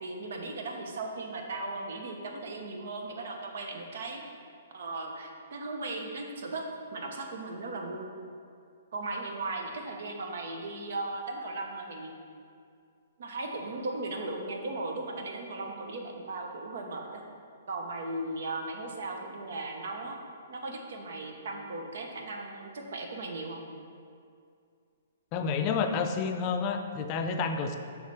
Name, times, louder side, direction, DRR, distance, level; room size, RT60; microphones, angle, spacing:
voice 1, 0.0-4.2 4.7-6.6 6.9-8.1 8.9-12.1 13.2-17.2 17.7-20.2 20.5-23.7, right 2 dB, 65° right, 2 dB, 0.8 m, -37 dB
voice 2, 25.3-27.8, left 5 dB, 35° left, 6 dB, 0.4 m, -29 dB
6.5 x 3.1 x 4.7 m, 2.3 s
hypercardioid pair, 135°, 0 cm